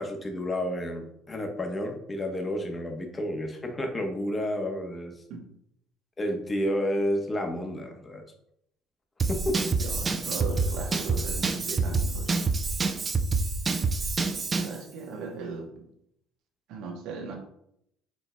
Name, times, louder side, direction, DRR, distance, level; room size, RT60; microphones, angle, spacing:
voice 1, 0.0-5.1 6.2-8.2 9.3-9.6, left 1 dB, 25° left, 4 dB, 0.9 m, -30 dB
Drum kit / Drum, 9.2-14.8, right 4 dB, 30° right, 0.5 m, -27 dB
voice 2, 9.8-12.4 14.6-15.9 16.7-17.4, right 4 dB, 65° right, 2 dB, 1.0 m, -38 dB
4.4 x 3.9 x 2.2 m, 0.75 s
hypercardioid pair, 60°, 0 cm